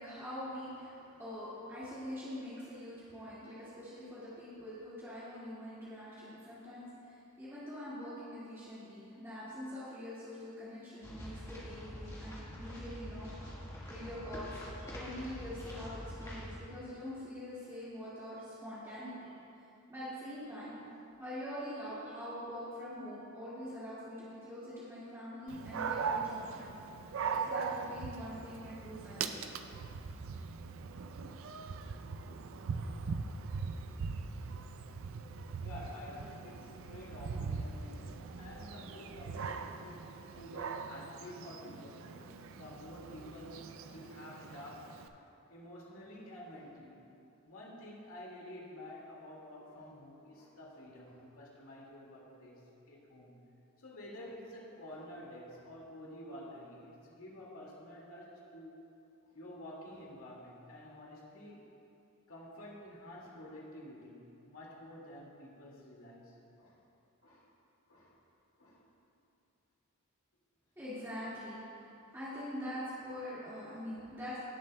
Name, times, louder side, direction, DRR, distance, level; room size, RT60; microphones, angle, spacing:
voice 1, 0.0-19.3 19.6-20.7 21.2-26.7 27.3-29.5 70.8-74.4, equal, 10° right, -12 dB, 1.9 m, -44 dB
sound 1, 11.0-16.6, equal, 15° left, 1.4 m, -45 dB
Dog, 25.5-45.1, right 5 dB, 70° right, 0.4 m, -41 dB
voice 2, 35.6-40.1 40.4-44.9 45.5-47.0 47.5-52.6 52.9-53.4 53.8-58.8 59.3-61.6 62.3-66.8 67.2-67.5 67.9-68.1 68.6-68.8, left 1 dB, 80° left, -4 dB, 2.1 m, -50 dB
17.0 x 7.5 x 2.2 m, 2.7 s
head